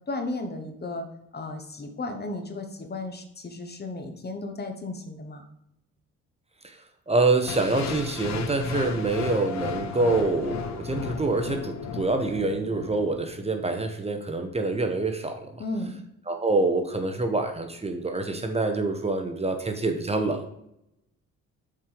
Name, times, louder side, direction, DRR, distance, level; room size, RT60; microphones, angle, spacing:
voice 1, 0.1-1.1 1.3-5.5 15.6-16.0, left 2 dB, 35° left, 6 dB, 1.3 m, -34 dB
voice 2, 7.1-15.6 16.3-20.5, right 3 dB, 20° right, 5 dB, 1.0 m, -26 dB
sound 1, 7.5-13.5, left 6 dB, 65° left, 1.0 m, -35 dB
7.1 x 4.6 x 5.2 m, 0.80 s
cardioid pair, 90°, 30 cm